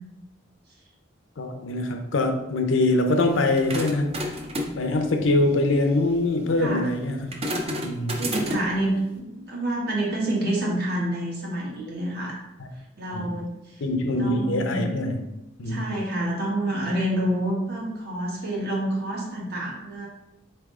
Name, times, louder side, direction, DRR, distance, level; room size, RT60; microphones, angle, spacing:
voice 1, 1.4-4.2 4.8-7.3 7.8-8.3 13.1-13.3 13.8-15.1 15.6-15.8, left 2 dB, 80° left, 5 dB, 0.6 m, -23 dB
sound 1, 3.3-8.8, equal, 30° right, 0.6 m, -33 dB
voice 2, 6.6-6.9 8.2-12.4 13.0-13.8 14.2-14.9 15.7-20.1, right 1 dB, 55° right, -3 dB, 1.3 m, -28 dB
4.1 x 3.4 x 3.6 m, 0.90 s
head